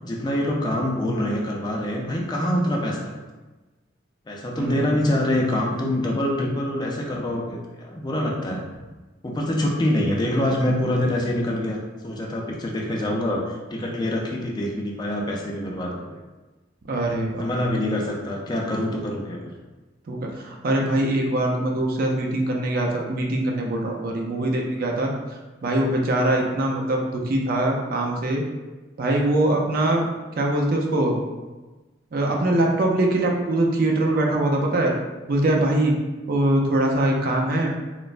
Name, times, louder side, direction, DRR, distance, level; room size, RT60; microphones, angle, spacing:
voice 1, 0.0-3.2 4.3-8.6 9.2-11.8 12.0-16.2 17.4-19.5, left 1 dB, 20° left, -1 dB, 0.3 m, -25 dB
voice 2, 4.6-5.0 16.9-17.5 20.1-25.1 25.6-28.4 29.0-30.0 30.4-31.2 32.1-34.9 35.3-35.9 36.3-37.7, right 1 dB, 50° right, 0 dB, 0.4 m, -22 dB
3.1 x 2.0 x 2.4 m, 1.2 s
head